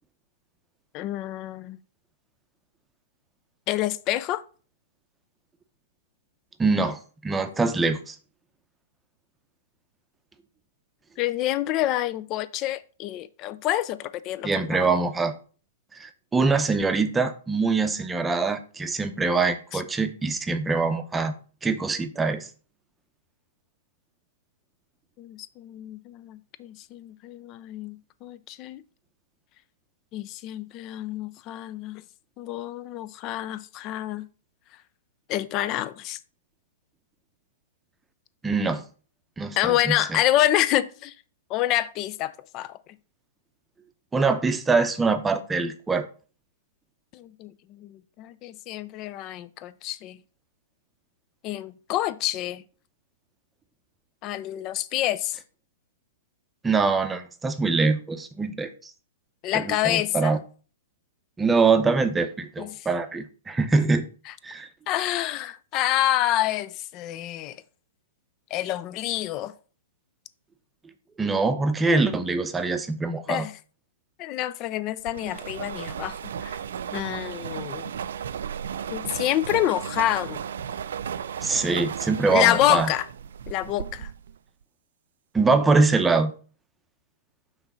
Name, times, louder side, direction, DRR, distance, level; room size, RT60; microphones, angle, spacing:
voice 1, 0.9-1.8 3.7-4.4 11.2-14.9 19.7-19.8 25.2-28.8 30.1-32.0 32.4-34.3 35.3-36.2 39.6-41.1 41.5-42.8 47.1-50.2 51.4-52.6 54.2-55.4 59.4-60.4 62.6-62.9 64.3-64.4 64.9-67.6 68.5-69.5 73.3-73.6 74.2-76.6 76.9-77.9 78.9-80.4 82.3-83.1 83.5-84.1, left 13 dB, 35° left, 0.4 m, -27 dB
voice 2, 6.6-8.1 14.4-15.3 16.0-21.3 21.6-22.5 38.4-38.8 39.4-40.2 44.1-46.1 56.6-58.7 59.5-60.4 61.4-64.1 64.4-64.7 71.2-73.5 81.4-82.9 85.3-86.3, right 4 dB, 10° right, 0.7 m, -23 dB
sound 1, 75.1-84.4, right 8 dB, 70° right, 0.4 m, -34 dB
6.0 x 3.9 x 5.1 m
hypercardioid pair, 115°, 0 cm